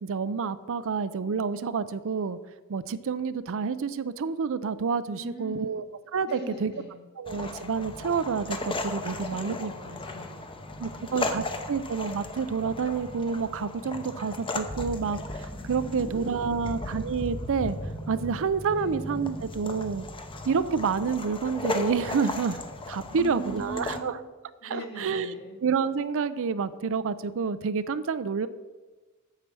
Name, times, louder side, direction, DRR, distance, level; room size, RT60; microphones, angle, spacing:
voice 1, 0.0-2.4 2.7-5.8 6.1-6.7 7.2-9.7 10.8-17.8 18.1-20.1 20.5-22.6 22.9-24.2 24.7-25.3 25.6-28.5, right 5 dB, 65° right, 14 dB, 0.5 m, -28 dB
voice 2, 5.1-5.8 6.2-7.0 9.1-10.7 10.9-11.6 15.8-16.8 18.7-19.0 23.1-24.3 24.6-25.6, equal, 50° left, 1 dB, 2.6 m, -42 dB
sound 1, 7.3-24.0, left 2 dB, 25° left, 0.8 m, -36 dB
8.8 x 7.5 x 6.1 m, 1.3 s
head